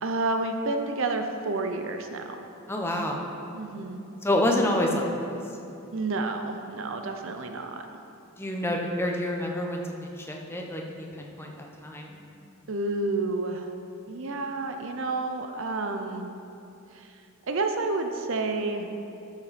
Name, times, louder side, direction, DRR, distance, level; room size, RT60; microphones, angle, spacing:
voice 1, 0.0-2.4 3.5-4.0 5.9-7.9 12.7-13.7 14.1-16.3 16.9-17.1 17.5-18.9, right 3 dB, 60° right, 5 dB, 0.6 m, -30 dB
voice 2, 2.7-3.2 4.2-5.1 8.4-12.2, left 1 dB, 10° left, 0 dB, 0.9 m, -28 dB
13.0 x 7.2 x 4.2 m, 2.8 s
head